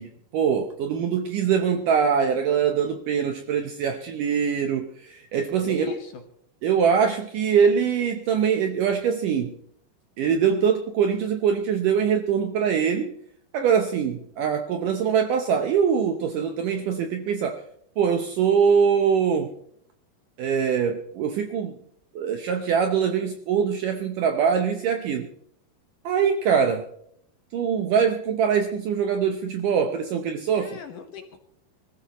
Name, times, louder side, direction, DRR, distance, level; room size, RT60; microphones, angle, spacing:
voice 1, 0.0-5.9 6.6-9.5 10.2-13.1 13.5-17.6 18.0-19.5 20.4-21.7 22.2-25.3 26.1-26.8 27.5-30.8, right 7 dB, 75° right, 5 dB, 2.0 m, -23 dB
voice 2, 5.7-6.2 30.5-31.4, left 6 dB, 65° left, 5 dB, 2.4 m, -38 dB
24.5 x 15.0 x 3.0 m, 0.67 s
omnidirectional pair, 4.8 m